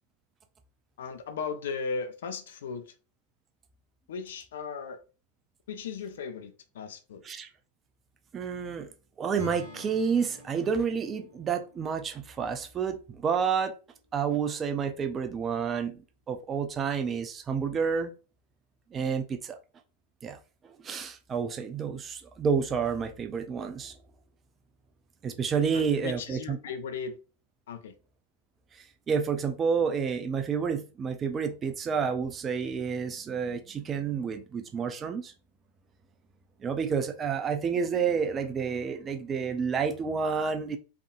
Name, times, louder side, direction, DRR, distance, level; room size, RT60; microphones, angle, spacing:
voice 1, 1.0-2.9 4.1-5.0 5.7-7.2 25.7-27.2 27.7-27.9, left 5 dB, 60° left, 0.5 m, -36 dB
voice 2, 8.3-8.9 9.2-13.7 14.1-16.0 16.3-18.1 18.9-19.6 20.2-20.4 20.6-23.9 25.2-26.6 28.7-35.3 36.6-40.8, right 6 dB, 25° right, 0.5 m, -29 dB
Acoustic guitar / Strum, 9.4-13.6, left 5 dB, 80° left, 1.2 m, -49 dB
3.6 x 3.4 x 2.4 m
figure-of-eight pair, 90°, 0 cm